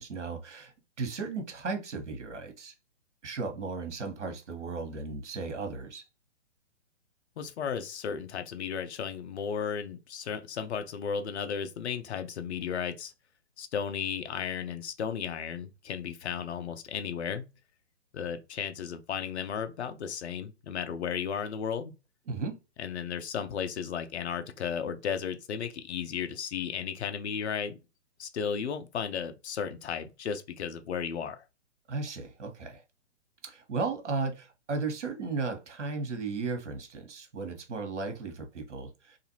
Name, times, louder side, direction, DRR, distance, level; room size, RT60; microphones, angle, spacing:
voice 1, 0.0-2.7 3.2-6.0 22.3-22.6 31.9-32.8 33.4-39.2, right 4 dB, 75° right, 0.9 m, -35 dB
voice 2, 7.4-13.1 13.6-17.5 18.1-21.9 22.8-27.8 28.2-31.4, left 7 dB, 65° left, 0.6 m, -34 dB
2.7 x 2.5 x 2.7 m
figure-of-eight pair, 130°, 36 cm